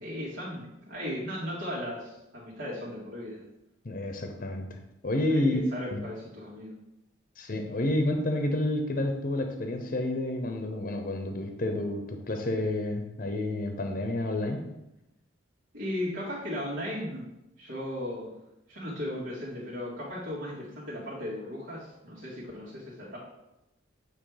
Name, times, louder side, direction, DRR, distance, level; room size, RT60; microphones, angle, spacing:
voice 1, 0.0-3.4 5.3-6.7 15.7-17.3 17.6-18.3 18.7-23.2, left 1 dB, 85° right, -8 dB, 2.1 m, -36 dB
voice 2, 3.8-5.6 5.9-6.0 7.4-14.6, left 1 dB, 45° left, 4 dB, 0.7 m, -30 dB
8.6 x 3.3 x 4.9 m, 0.91 s
head